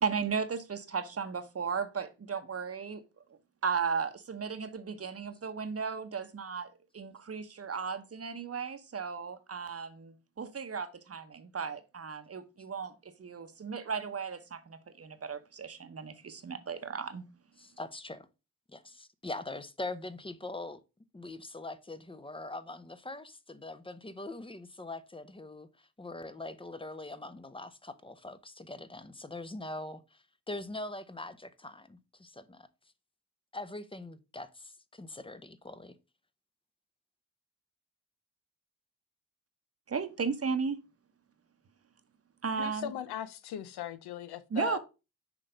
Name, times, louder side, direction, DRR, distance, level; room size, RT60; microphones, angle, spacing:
voice 1, 0.0-3.0 3.6-6.7 6.9-17.2 39.9-40.8 42.4-42.9 44.5-44.8, right 5 dB, 35° right, 1.0 m, -35 dB
voice 2, 17.6-18.3 18.7-20.8 21.1-32.7 33.5-35.9, left 2 dB, 15° left, 0.7 m, -42 dB
voice 3, 42.6-44.8, left 11 dB, 70° left, 0.7 m, -39 dB
6.0 x 3.2 x 5.0 m
supercardioid pair, 50°, 40 cm